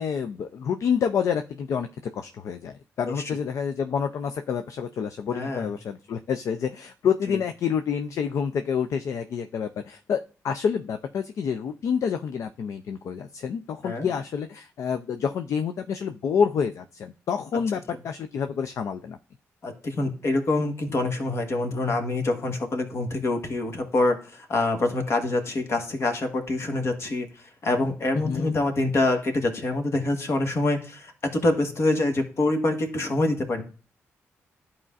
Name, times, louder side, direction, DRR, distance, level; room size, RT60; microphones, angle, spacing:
voice 1, 0.0-1.9 2.1-19.2 28.1-28.5, left 7 dB, 70° left, 8 dB, 0.4 m, -28 dB
voice 2, 5.3-5.7 7.3-7.4 13.8-14.1 19.6-27.3 27.6-31.1 31.4-33.6, left 2 dB, 55° left, 5 dB, 1.3 m, -25 dB
11.0 x 4.2 x 2.4 m, 0.36 s
cardioid pair, 65°, 5 cm